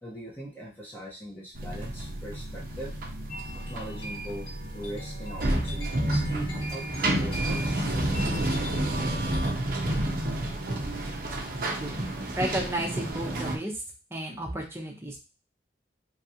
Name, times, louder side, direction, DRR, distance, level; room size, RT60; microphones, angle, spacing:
voice 1, 0.0-3.0 3.5-9.6, right 1 dB, 10° left, -5 dB, 0.8 m, -41 dB
sound 1, 1.6-13.6, right 1 dB, 50° right, 0.6 m, -30 dB
sound 2, 3.3-9.5, right 1 dB, 60° left, 1.8 m, -41 dB
voice 2, 11.6-12.0 12.4-13.8 14.1-15.2, right 1 dB, 15° right, 0 dB, 0.7 m, -32 dB
3.2 x 2.5 x 2.7 m, 0.32 s
head